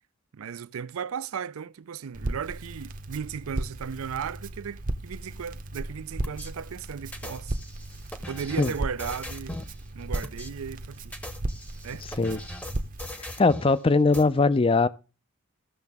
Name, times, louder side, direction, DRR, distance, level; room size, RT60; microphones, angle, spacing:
voice 1, 0.3-7.6 8.3-9.6 9.9-11.2 11.8-12.0, right 7 dB, 85° right, 0.4 m, -36 dB
Crackle, 2.1-13.0, right 1 dB, 40° right, 0.7 m, -36 dB
sound 1, 6.2-6.5 7.1-9.7 10.1-10.5 11.0-13.7 14.1-14.2, left 1 dB, 5° left, 0.8 m, -39 dB
voice 2, 13.4-14.9, left 3 dB, 25° left, 0.4 m, -21 dB
15.0 x 6.7 x 3.5 m
head